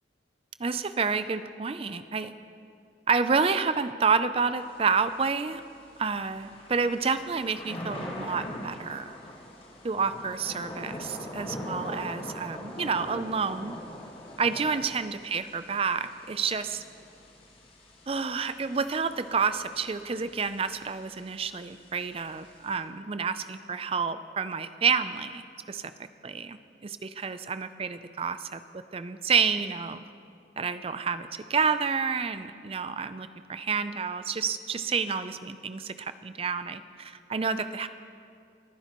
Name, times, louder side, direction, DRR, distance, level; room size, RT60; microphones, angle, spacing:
voice 1, 0.6-2.3 3.1-5.6 6.0-9.1 9.8-13.8 14.4-16.8 18.1-25.9 26.2-30.0 30.6-37.9, right 5 dB, 30° right, 12 dB, 0.4 m, -29 dB
Thunder / Rain, 4.6-22.8, left 1 dB, 30° left, 1.7 m, -43 dB
30.0 x 10.0 x 3.0 m, 2.4 s
head